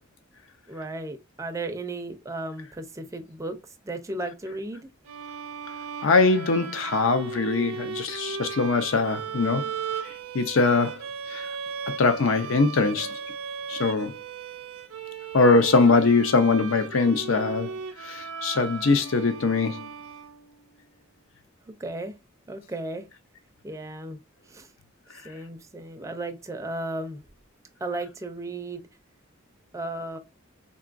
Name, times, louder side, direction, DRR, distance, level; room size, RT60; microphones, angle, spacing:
voice 1, 0.7-3.6 3.8-4.9 21.7-22.1 22.5-23.1 23.6-24.2 24.5-24.7 25.2-27.2 27.8-28.8 29.7-30.2, right 2 dB, 15° right, 0.4 m, -34 dB
sound 1, 5.0-20.7, right 6 dB, 85° right, 0.5 m, -37 dB
voice 2, 6.0-9.7 10.3-11.0 11.3-11.5 12.0-13.1 13.7-14.2 15.3-17.7 18.0-19.9, left 3 dB, 65° left, 0.5 m, -22 dB
3.8 x 2.3 x 2.4 m
head